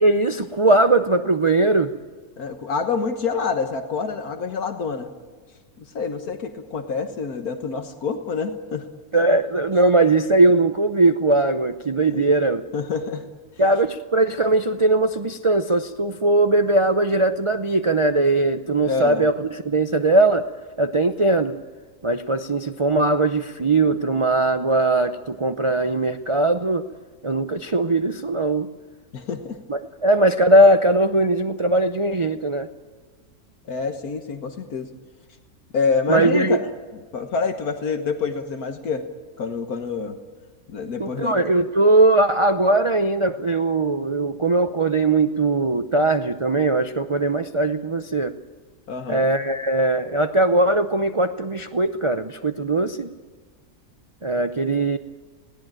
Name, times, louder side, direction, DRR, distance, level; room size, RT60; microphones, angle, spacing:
voice 1, 0.0-1.9 9.1-12.6 13.6-20.5 20.8-21.6 22.0-26.9 27.2-28.7 29.7-32.7 36.1-36.6 41.0-48.3 49.1-53.1 54.2-55.0, right 2 dB, 40° right, 8 dB, 0.4 m, -20 dB
voice 2, 2.4-5.1 5.8-8.9 12.1-12.2 12.7-13.2 18.9-19.2 29.1-29.6 33.7-34.9 35.7-36.6 37.1-39.0 39.4-40.2 40.7-41.4 48.9-49.2, left 5 dB, 75° left, 6 dB, 1.7 m, -27 dB
20.5 x 17.5 x 9.0 m, 1.5 s
omnidirectional pair, 1.6 m